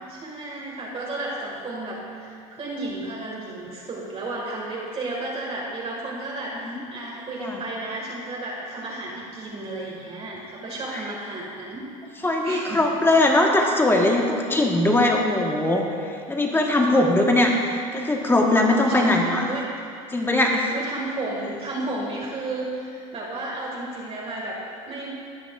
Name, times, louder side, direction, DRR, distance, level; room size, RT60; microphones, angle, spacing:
voice 1, 0.0-11.9 12.1-13.0 18.9-20.0 20.7-25.1, right 2 dB, 35° right, -4 dB, 1.8 m, -33 dB
voice 2, 12.2-19.5 20.1-20.7, left 1 dB, 10° left, 0 dB, 1.3 m, -20 dB
17.5 x 5.9 x 2.4 m, 2.4 s
supercardioid pair, 90°, 18 cm